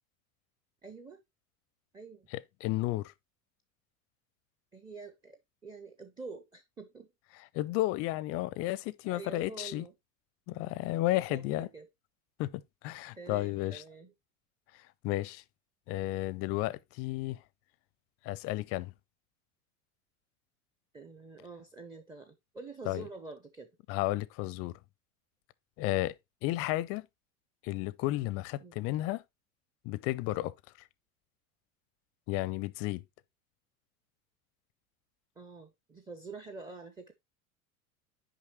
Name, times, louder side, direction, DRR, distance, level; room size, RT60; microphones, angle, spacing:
voice 1, 0.8-1.2 1.9-2.3 4.7-7.1 9.0-9.9 11.1-11.9 13.1-14.1 20.9-23.7 28.6-28.9 35.4-37.1, right 4 dB, 10° right, 0.6 m, -47 dB
voice 2, 2.3-3.1 7.5-9.8 10.5-11.7 12.4-13.8 15.0-15.4 15.9-17.4 18.2-18.9 22.9-23.0 23.9-24.8 25.8-26.1 26.4-27.1 27.6-29.2 29.8-30.5 32.3-33.0, left 17 dB, 35° left, 0.5 m, -32 dB
6.4 x 5.2 x 3.0 m
figure-of-eight pair, 85°, 43 cm